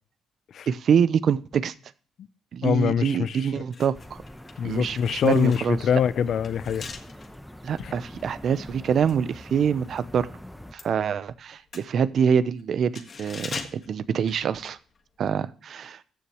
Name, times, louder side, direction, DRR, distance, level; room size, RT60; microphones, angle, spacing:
voice 1, 0.7-1.7 2.5-4.2 4.6-5.8 7.6-10.3 10.7-14.8 15.2-16.0, right 7 dB, 60° right, 0.7 m, -25 dB
voice 2, 2.6-3.5 4.6-6.8 7.8-7.9, left 8 dB, 65° left, 0.6 m, -24 dB
sound 1, 3.5-10.1 10.4-15.0 15.3-15.5, left 5 dB, 45° left, 1.5 m, -43 dB
sound 2, 3.9-10.7, left 1 dB, 5° left, 0.9 m, -43 dB
14.5 x 6.8 x 3.0 m
cardioid pair, 90°, 0 cm